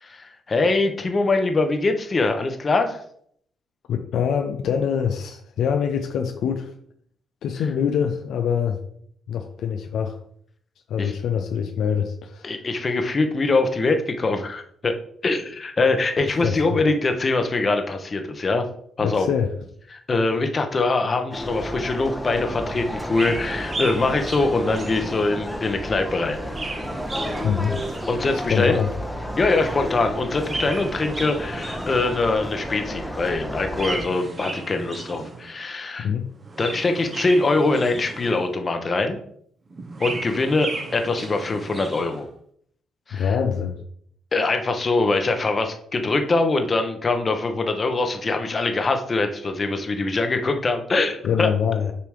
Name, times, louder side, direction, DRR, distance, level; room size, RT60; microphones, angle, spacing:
voice 1, 0.0-3.0 11.0-11.1 12.4-14.9 15.2-18.7 19.0-19.3 19.9-26.4 28.1-28.8 29.4-36.1 36.6-39.2 40.0-42.2 43.1-43.4 44.3-51.5, left 3 dB, 35° left, 6 dB, 1.0 m, -23 dB
voice 2, 3.9-6.7 7.4-8.8 9.3-10.2 10.9-12.5 16.4-16.8 19.0-19.5 27.4-27.8 28.3-28.9 36.0-36.3 43.1-43.8 51.2-51.9, left 7 dB, 75° left, 4 dB, 0.6 m, -24 dB
sound 1, 21.3-34.0, equal, 5° left, 1.0 m, -32 dB
Chirp tweet, 23.1-25.6 26.2-28.7 30.2-32.4 33.7-35.6 36.3-38.6 39.7-42.2, right 3 dB, 35° right, 1.1 m, -35 dB
6.9 x 3.0 x 5.0 m, 0.65 s
supercardioid pair, 65°, 0 cm